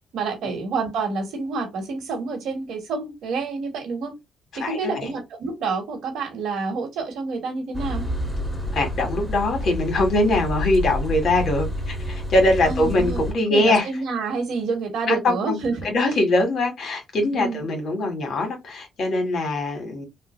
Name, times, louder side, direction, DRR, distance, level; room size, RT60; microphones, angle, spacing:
voice 1, 0.1-4.1 4.5-8.0 12.7-13.2 13.5-15.9 17.3-17.6, right 4 dB, 75° right, 1.4 m, -28 dB
voice 2, 4.6-5.1 8.7-13.9 15.1-15.6 15.8-20.1, left 2 dB, 60° left, 1.6 m, -22 dB
sound 1, 7.7-13.3, left 1 dB, ahead, 1.5 m, -29 dB
3.4 x 2.2 x 3.1 m
cardioid pair, 90°, 0 cm